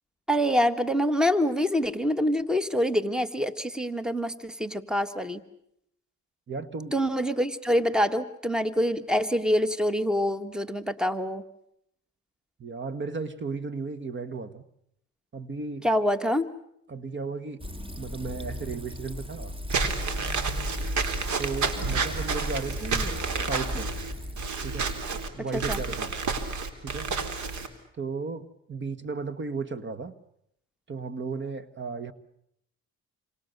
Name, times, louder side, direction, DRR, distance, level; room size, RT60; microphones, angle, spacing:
voice 1, 0.3-5.4 6.9-11.4 15.8-16.5 25.5-25.8, equal, ahead, 13 dB, 1.7 m, -26 dB
voice 2, 6.5-6.9 12.6-14.6 15.3-15.9 16.9-17.6 18.0-19.6 21.4-23.9 24.6-26.1 26.8-27.1 27.9-30.1 30.9-32.1, right 4 dB, 40° right, 14 dB, 1.6 m, -35 dB
Fill (with liquid), 17.6-25.3, left 1 dB, 15° right, 2.1 m, -37 dB
Walk footsteps / Squeak, 19.7-27.7, right 4 dB, 70° right, 3.8 m, -30 dB
28.0 x 26.5 x 6.8 m, 0.76 s
cardioid pair, 90°, 30 cm